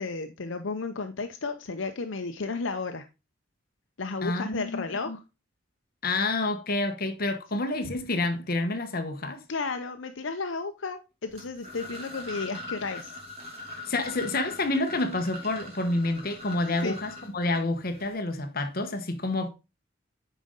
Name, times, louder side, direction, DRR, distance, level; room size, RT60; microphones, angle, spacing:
voice 1, 0.0-3.1 4.0-5.2 9.5-13.1 16.8-17.0, left 4 dB, 75° left, 0.7 m, -33 dB
voice 2, 4.2-5.2 6.0-9.4 13.9-19.5, left 2 dB, 50° left, 1.2 m, -28 dB
sound 1, 11.3-18.1, left 2 dB, 30° right, 2.7 m, -42 dB
9.1 x 5.2 x 3.7 m
head